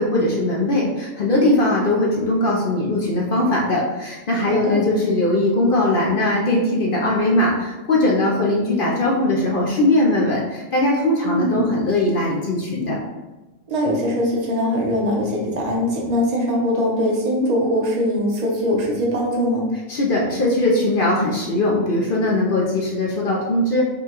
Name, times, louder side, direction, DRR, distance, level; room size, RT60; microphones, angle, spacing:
voice 1, 0.0-13.0 19.9-23.8, left 1 dB, 55° left, -3 dB, 0.6 m, -20 dB
voice 2, 4.4-4.8 11.3-11.7 13.7-19.7, equal, 35° right, -2 dB, 0.8 m, -21 dB
5.2 x 2.3 x 2.9 m, 1.1 s
omnidirectional pair, 1.4 m